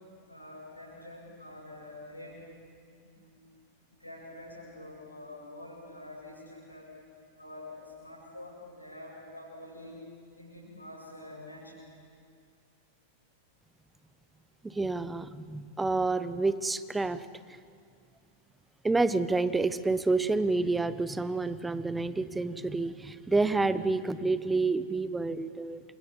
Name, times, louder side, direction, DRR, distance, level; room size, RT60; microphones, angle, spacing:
voice 1, 0.3-2.4 3.0-3.4 4.0-6.9 7.4-10.0 10.4-11.8, left 1 dB, 85° left, -4 dB, 7.9 m, -46 dB
voice 2, 14.6-17.3 18.8-25.8, right 3 dB, 10° right, 15 dB, 1.0 m, -29 dB
28.5 x 27.0 x 5.7 m, 2.2 s
figure-of-eight pair, 90°, 0 cm